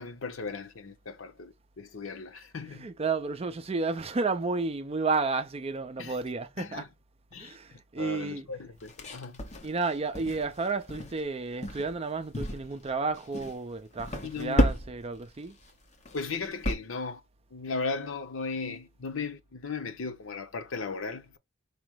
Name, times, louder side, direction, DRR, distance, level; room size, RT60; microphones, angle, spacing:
voice 1, 0.0-2.9 6.0-6.2 6.6-6.9 7.3-7.6 8.0-9.4 14.2-14.7 16.1-17.2 17.5-21.4, left 4 dB, 85° left, 0.8 m, -36 dB
voice 2, 2.7-6.8 7.4-8.5 9.6-15.6, right 4 dB, 30° right, 0.5 m, -32 dB
sound 1, 8.8-10.6 10.9-11.2 11.6-12.0 12.3-12.9 13.2-13.6 14.0-15.2 15.5-15.7 16.0-16.8, equal, 35° left, 1.0 m, -31 dB
5.0 x 2.0 x 4.5 m
head